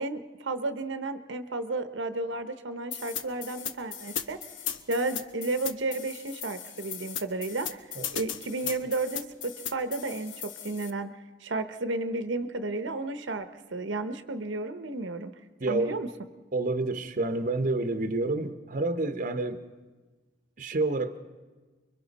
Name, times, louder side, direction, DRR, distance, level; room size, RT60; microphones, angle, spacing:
voice 1, 0.0-4.4 4.9-11.1 11.4-15.3 15.7-16.1, right 2 dB, 70° right, 0.9 m, -32 dB
sound 1, 2.9-10.9, left 8 dB, 90° left, 1.0 m, -37 dB
voice 2, 15.6-16.0 16.5-19.6 20.6-21.2, right 2 dB, 45° right, 0.9 m, -28 dB
30.0 x 23.0 x 4.1 m
head